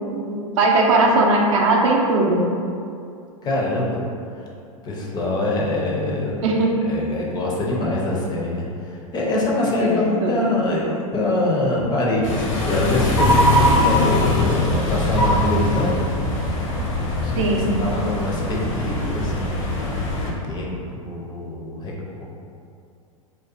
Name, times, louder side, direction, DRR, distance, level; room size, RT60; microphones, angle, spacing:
voice 1, 0.1-2.5 6.4-6.8 9.8-10.0 10.2-10.5 17.4-17.7, right 2 dB, 60° right, -1 dB, 0.5 m, -19 dB
voice 2, 3.4-4.0 4.4-4.5 4.8-6.4 6.9-15.9 17.2-19.5 20.4-21.9, left 2 dB, 25° left, -4 dB, 0.4 m, -24 dB
sound 1, 12.2-20.3, left 1 dB, 65° left, 0.6 m, -21 dB
2.5 x 2.3 x 2.4 m, 2.4 s
hypercardioid pair, 105°, 18 cm